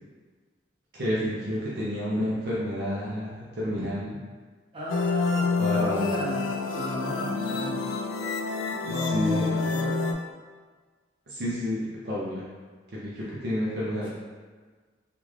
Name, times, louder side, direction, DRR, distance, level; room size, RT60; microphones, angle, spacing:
voice 1, 0.9-4.2 5.6-6.2 8.9-9.5 11.3-12.4 12.9-14.1, equal, 55° right, -7 dB, 0.6 m, -30 dB
voice 2, 4.7-6.4 6.7-7.8 8.9-10.1, left 1 dB, 25° right, -8 dB, 0.9 m, -34 dB
sound 1, 4.9-10.1, left 4 dB, 65° left, 0.3 m, -27 dB
3.6 x 2.4 x 3.1 m, 1.5 s
head